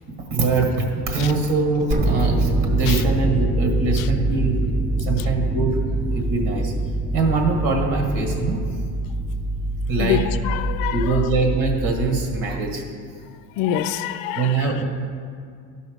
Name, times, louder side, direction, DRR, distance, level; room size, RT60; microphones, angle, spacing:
voice 1, 0.1-4.6 5.0-6.7 7.1-8.6 9.9-10.2 10.9-12.8 14.3-14.8, right 3 dB, 80° right, 1 dB, 1.7 m, -23 dB
sound 1, 1.9-12.9, right 2 dB, 25° right, 0.6 m, -24 dB
voice 2, 10.0-11.3 13.6-14.8, left 10 dB, 80° left, 11 dB, 0.5 m, -26 dB
13.0 x 5.5 x 5.0 m, 2.2 s
cardioid pair, 150°, 34 cm